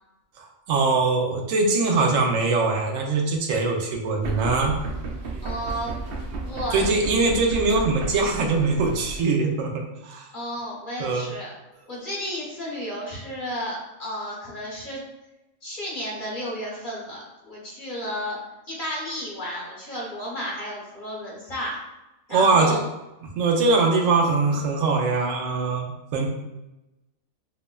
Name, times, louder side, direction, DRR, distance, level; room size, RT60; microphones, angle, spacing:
voice 1, 0.4-4.7 6.7-10.3 11.0-11.3 22.3-22.8 23.4-26.3, right 3 dB, 80° right, 1 dB, 1.0 m, -22 dB
sound 1, 4.2-9.2, right 3 dB, 65° right, 0.6 m, -33 dB
voice 2, 5.4-6.0 6.4-6.8 10.3-11.5 11.9-15.0 15.6-18.4 18.7-21.8 22.3-22.8, equal, 40° left, -5 dB, 1.1 m, -32 dB
5.5 x 2.1 x 2.2 m, 0.96 s
omnidirectional pair, 1.4 m